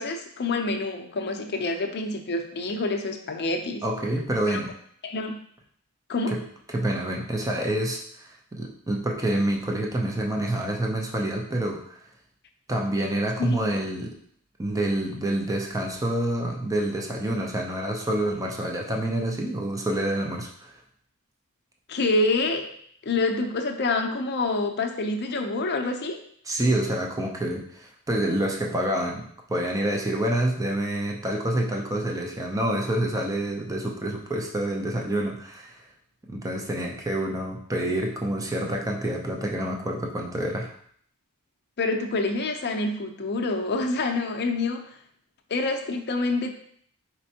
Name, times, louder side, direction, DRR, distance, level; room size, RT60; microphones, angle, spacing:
voice 1, 0.0-3.8 4.5-4.6 5.0-5.4 6.1-6.4 13.4-13.5 21.9-22.7 23.1-26.2 41.8-44.9 45.5-46.5, left 2 dB, 50° left, 4 dB, 0.6 m, -27 dB
voice 2, 3.8-4.7 6.3-6.4 6.7-12.0 12.7-14.2 14.6-20.8 26.5-35.8 36.3-40.7, right 1 dB, 15° right, 1 dB, 0.5 m, -27 dB
4.4 x 4.2 x 2.8 m, 0.62 s
head